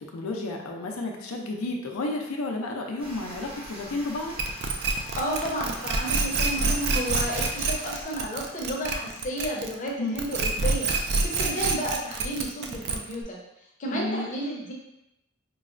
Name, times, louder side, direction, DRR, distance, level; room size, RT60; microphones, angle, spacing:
voice 1, 0.1-4.3 10.0-10.2 13.9-14.3, left 2 dB, 85° left, 2 dB, 0.5 m, -31 dB
sound 1, 3.0-8.0, right 1 dB, 25° right, 0.8 m, -43 dB
sound 2, 4.4-9.9 10.2-13.2, right 3 dB, 50° right, 0.3 m, -27 dB
voice 2, 5.2-13.4 13.8-14.7, equal, 40° left, -2 dB, 0.7 m, -32 dB
4.6 x 2.0 x 2.5 m, 0.85 s
head